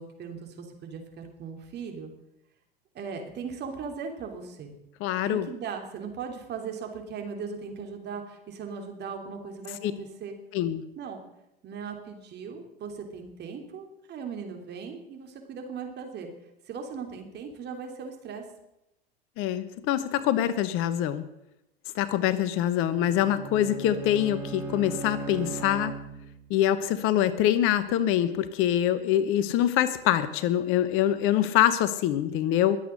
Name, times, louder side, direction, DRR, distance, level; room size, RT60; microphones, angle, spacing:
voice 1, 0.0-2.1 2.9-4.8 5.3-10.4 10.9-11.2 11.6-16.3 16.6-18.4, right 5 dB, 35° right, 4 dB, 3.3 m, -38 dB
voice 2, 5.0-5.5 9.8-9.9 10.5-10.8 19.4-21.2 21.9-25.9 26.5-32.8, left 11 dB, 45° left, 14 dB, 1.0 m, -24 dB
Bowed string instrument, 22.9-26.6, right 4 dB, 10° right, 1.9 m, -38 dB
21.5 x 8.2 x 6.4 m, 0.87 s
hypercardioid pair, 90°, 29 cm